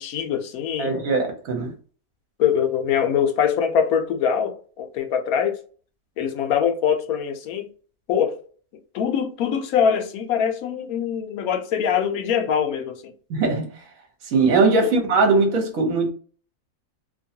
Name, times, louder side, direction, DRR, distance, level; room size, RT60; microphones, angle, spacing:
voice 1, 0.0-1.0 2.4-5.6 6.2-7.7 8.1-8.4 8.9-13.1 14.8-14.9, left 8 dB, 80° left, 1.1 m, -23 dB
voice 2, 0.8-1.7 13.3-13.7 14.3-16.1, right 3 dB, 70° right, 1.3 m, -20 dB
2.9 x 2.2 x 2.7 m
omnidirectional pair, 1.5 m